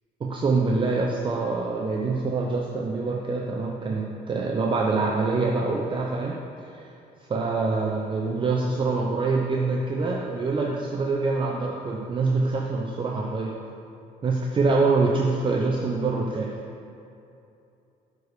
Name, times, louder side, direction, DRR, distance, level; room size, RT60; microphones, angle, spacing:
voice 1, 0.2-6.4 6.7-6.8 7.3-13.5 14.2-16.5, right 3 dB, 30° right, -1 dB, 0.7 m, -25 dB
6.8 x 4.8 x 6.6 m, 2.7 s
cardioid pair, 110°, 17 cm